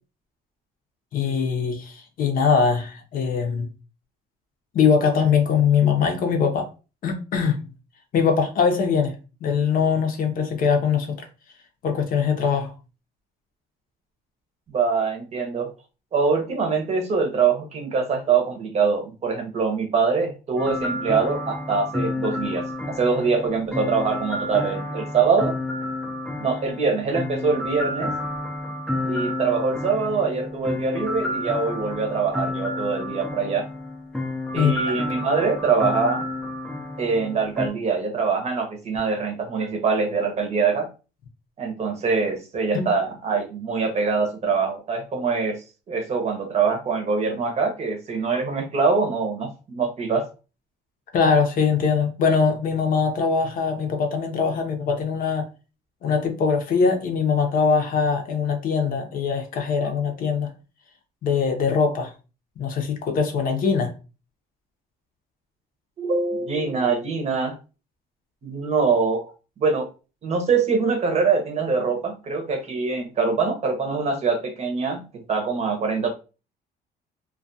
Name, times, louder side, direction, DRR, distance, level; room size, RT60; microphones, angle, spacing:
voice 1, 1.1-3.7 4.7-6.7 7.0-7.6 8.1-9.2 9.4-11.2 11.8-12.7 34.5-35.0 42.7-42.8 51.1-55.5 56.0-60.5 61.2-62.1 62.6-63.9, left 6 dB, 55° left, 4 dB, 0.7 m, -22 dB
voice 2, 14.7-15.7 16.1-25.5 26.4-28.1 29.0-33.7 34.5-36.2 37.0-40.9 41.6-45.6 45.9-50.3 66.0-67.5 68.4-69.3 69.6-69.9 70.2-76.1, right 5 dB, 40° right, 4 dB, 0.7 m, -24 dB
sound 1, 20.6-37.7, left 1 dB, 5° left, 0.4 m, -30 dB
2.3 x 2.3 x 2.6 m, 0.32 s
cardioid pair, 110°, 17 cm